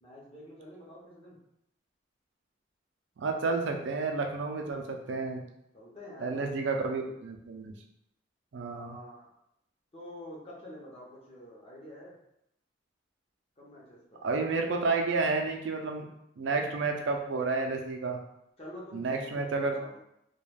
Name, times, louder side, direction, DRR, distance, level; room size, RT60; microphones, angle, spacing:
voice 1, 0.0-1.4 5.7-6.5 8.7-9.3 9.9-12.1 13.6-14.2 18.6-20.0, left 1 dB, 30° left, -4 dB, 0.7 m, -47 dB
voice 2, 3.2-5.4 6.2-7.7 8.5-9.0 14.2-16.1 16.4-18.2 18.9-19.8, right 3 dB, 80° right, 2 dB, 0.4 m, -30 dB
2.3 x 2.2 x 3.2 m, 0.79 s
head